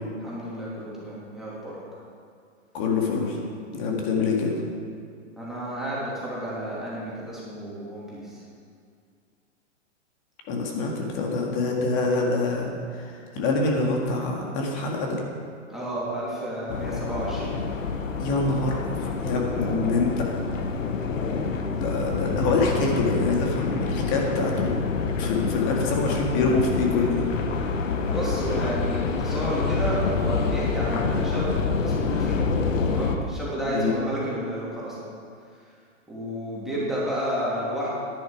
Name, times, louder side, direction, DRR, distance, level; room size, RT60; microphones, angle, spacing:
voice 1, 0.2-1.8 5.4-8.4 15.7-17.6 28.0-31.5 31.8-32.4 32.9-35.0 36.1-37.9, right 1 dB, ahead, -9 dB, 2.8 m, -31 dB
voice 2, 2.7-3.4 3.7-4.5 10.5-13.1 13.3-15.2 18.2-20.3 21.8-24.7 25.2-27.3 33.8-33.9, left 3 dB, 40° left, 0 dB, 2.0 m, -25 dB
sound 1, 16.7-33.2, left 4 dB, 85° left, 1.2 m, -27 dB
10.5 x 10.5 x 4.9 m, 2.3 s
hypercardioid pair, 140°, 38 cm